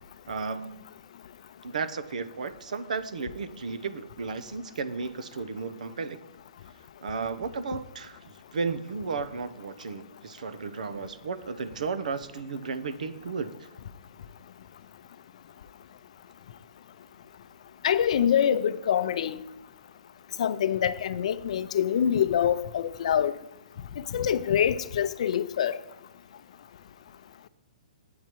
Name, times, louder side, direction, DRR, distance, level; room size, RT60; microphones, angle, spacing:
voice 1, 0.3-0.8 1.6-6.2 7.0-13.5, right 4 dB, 85° right, 12 dB, 0.7 m, -34 dB
voice 2, 17.8-19.4 20.4-23.3 24.1-25.8, left 9 dB, 60° left, 14 dB, 0.5 m, -25 dB
8.6 x 8.3 x 4.6 m, 0.91 s
hypercardioid pair, 155°, 4 cm